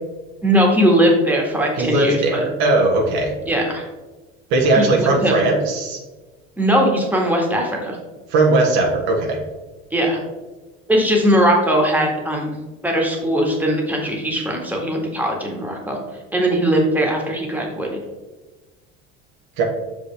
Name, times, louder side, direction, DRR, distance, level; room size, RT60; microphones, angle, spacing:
voice 1, 0.4-2.4 3.5-3.9 4.7-5.3 6.6-8.0 9.9-10.2 10.9-12.5 12.8-16.0 16.3-18.0, equal, 5° right, 0 dB, 1.8 m, -19 dB
voice 2, 1.8-3.3 4.5-6.0 8.3-9.4 19.6-19.7, right 2 dB, 65° right, 0 dB, 1.4 m, -18 dB
6.1 x 5.3 x 3.4 m, 1.2 s
supercardioid pair, 95°, 29 cm